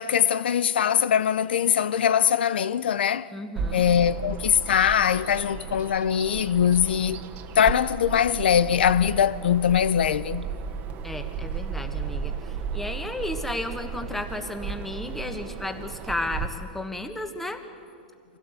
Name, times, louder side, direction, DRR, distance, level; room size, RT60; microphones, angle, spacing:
voice 1, 0.0-3.3 3.7-7.2 7.6-10.4, left 8 dB, 85° left, 0.6 m, -22 dB
voice 2, 3.3-3.8 11.0-17.6, left 1 dB, 5° left, 1.4 m, -33 dB
Bird vocalization bird call bird song, 3.6-16.5, right 6 dB, 35° right, 1.3 m, -34 dB
24.5 x 16.5 x 7.9 m
hypercardioid pair, 140°, 5 cm